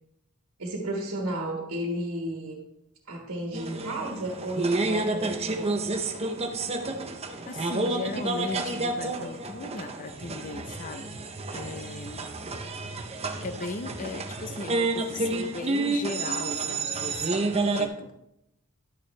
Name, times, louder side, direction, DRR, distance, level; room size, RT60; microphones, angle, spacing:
voice 1, 0.6-2.6 3.1-5.8, right 1 dB, 70° right, -1 dB, 1.6 m, -33 dB
sound 1, 3.5-17.9, right 3 dB, 30° right, 0.7 m, -30 dB
voice 2, 7.5-11.1 11.5-12.2 13.4-17.4 17.7-18.1, left 3 dB, 40° left, 8 dB, 0.7 m, -37 dB
12.0 x 6.8 x 3.2 m, 0.84 s
head